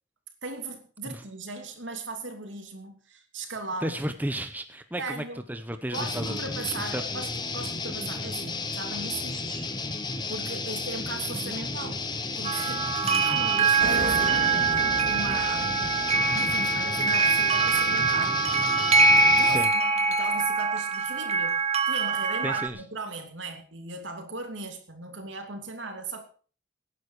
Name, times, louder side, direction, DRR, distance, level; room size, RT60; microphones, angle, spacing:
voice 1, 0.4-4.0 5.0-5.4 5.9-9.7 10.3-12.1 12.3-18.4 19.3-26.2, right 3 dB, 80° right, 5 dB, 3.0 m, -38 dB
voice 2, 3.8-7.0 19.5-19.7 22.4-22.8, right 1 dB, 10° right, 8 dB, 0.9 m, -33 dB
sound 1, 5.9-19.7, left 3 dB, 25° left, 1.3 m, -33 dB
sound 2, 12.4-22.7, right 4 dB, 35° right, 1.4 m, -24 dB
sound 3, 13.8-18.2, right 1 dB, 55° right, 2.4 m, -36 dB
18.0 x 9.9 x 4.8 m, 0.41 s
head